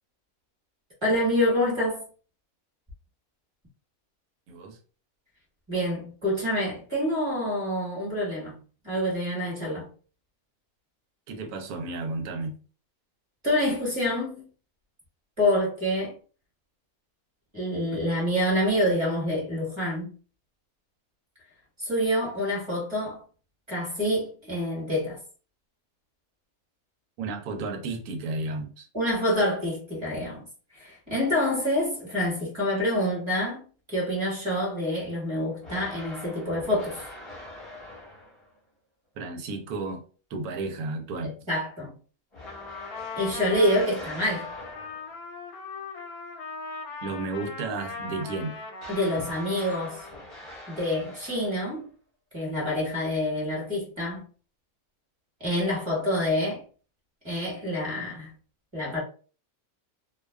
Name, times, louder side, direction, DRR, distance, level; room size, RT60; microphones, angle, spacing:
voice 1, 1.0-2.0 5.7-8.5 8.8-9.9 13.4-14.5 15.4-16.2 17.5-20.1 21.8-23.2 23.7-25.2 28.9-30.4 30.7-33.6 33.9-37.0 41.5-41.9 43.1-44.5 48.9-50.1 50.7-51.9 52.3-54.2 55.4-56.6 57.2-58.3 58.7-59.0, left 1 dB, 20° right, 1.0 m, -27 dB
voice 2, 4.5-4.8 11.3-12.5 27.2-28.9 39.2-40.0 40.3-41.3 47.0-48.6, right 3 dB, 85° right, 1.1 m, -33 dB
sound 1, 35.6-38.6 42.3-45.2 48.8-51.9, left 1 dB, 25° left, 0.7 m, -44 dB
Trumpet, 42.4-50.3, left 4 dB, 85° left, 1.0 m, -39 dB
2.5 x 2.2 x 2.2 m
omnidirectional pair, 1.5 m